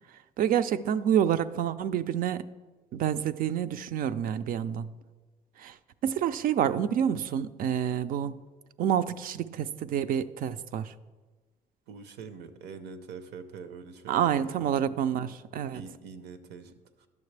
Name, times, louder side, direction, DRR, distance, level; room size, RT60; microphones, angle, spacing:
voice 1, 0.4-2.5 2.9-4.9 5.6-5.8 6.0-8.3 8.8-10.9 14.1-15.8, right 9 dB, 55° right, 14 dB, 0.4 m, -28 dB
voice 2, 11.9-14.6 15.7-17.1, right 5 dB, 80° right, 10 dB, 0.7 m, -44 dB
10.5 x 6.5 x 3.3 m, 1.3 s
cardioid pair, 110°, 17 cm